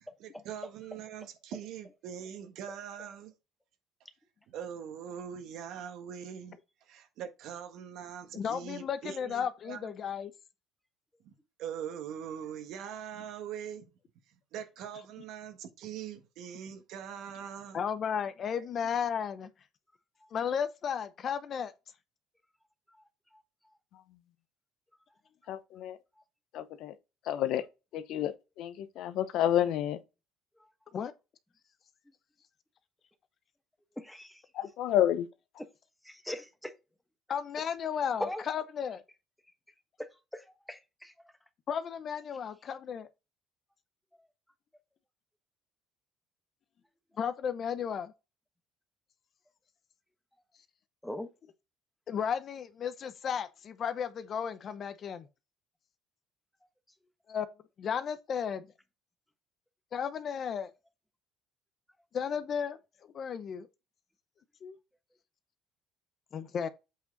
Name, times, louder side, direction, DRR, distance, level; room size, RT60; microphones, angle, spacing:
voice 1, 0.2-3.3 4.5-9.9 11.2-13.8 14.3-17.8, right 8 dB, 70° right, 1.5 m, -42 dB
voice 2, 8.3-10.3 17.7-19.5 20.3-21.7 30.9-31.1 37.3-39.0 41.7-43.1 47.2-48.1 52.1-55.3 57.3-57.5 57.8-58.7 59.9-60.7 62.1-62.8 63.1-63.7 64.6-64.8 66.3-66.7, left 7 dB, 40° left, 0.7 m, -34 dB
voice 3, 25.5-26.0 26.5-26.9 27.3-27.6 27.9-28.3 28.6-30.0 34.5-35.3, left 11 dB, 70° left, 0.9 m, -29 dB
voice 4, 34.0-34.4 35.6-35.7 36.0-36.7 38.2-38.4 40.0-41.1 51.0-51.3, left 1 dB, 5° left, 1.2 m, -40 dB
8.1 x 4.7 x 4.0 m
cardioid pair, 130°, 0 cm